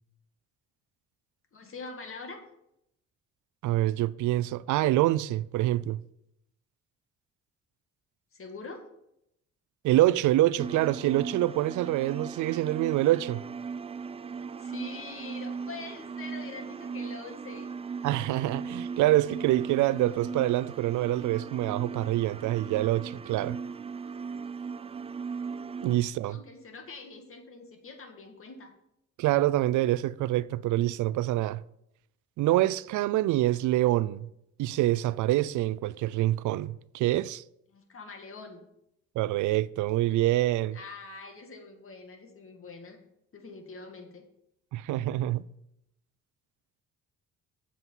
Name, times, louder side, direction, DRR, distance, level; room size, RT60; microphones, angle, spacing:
voice 1, 1.5-2.4 8.3-8.9 14.6-17.7 26.3-28.7 37.7-38.6 40.7-43.0 43.3-44.3, left 3 dB, 45° left, 2.1 m, -44 dB
voice 2, 3.6-6.0 9.8-13.4 18.0-23.6 25.8-26.4 29.2-31.6 32.4-34.3 34.6-37.4 39.2-40.8 44.7-45.4, right 15 dB, 80° right, 0.5 m, -26 dB
sound 1, 10.6-26.0, right 5 dB, 20° right, 0.3 m, -38 dB
8.0 x 7.5 x 5.6 m
cardioid pair, 90°, 30 cm